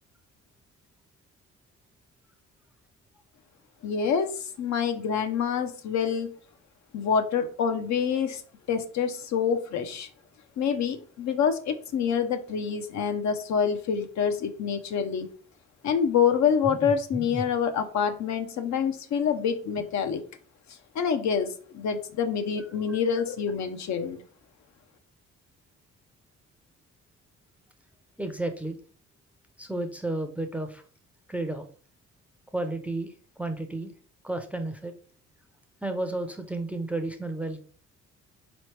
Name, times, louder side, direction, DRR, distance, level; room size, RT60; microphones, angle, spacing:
voice 1, 3.8-6.3 6.9-8.4 8.7-10.1 10.6-15.3 15.8-20.2 20.9-24.2, left 7 dB, 65° left, 7 dB, 0.7 m, -26 dB
voice 2, 16.7-17.4 22.6-23.0 28.2-28.8 29.6-30.8 31.3-31.6 32.5-33.9 34.2-34.9 35.8-37.6, right 2 dB, 5° right, 6 dB, 0.5 m, -32 dB
4.0 x 3.1 x 3.2 m, 0.42 s
cardioid pair, 90°, 30 cm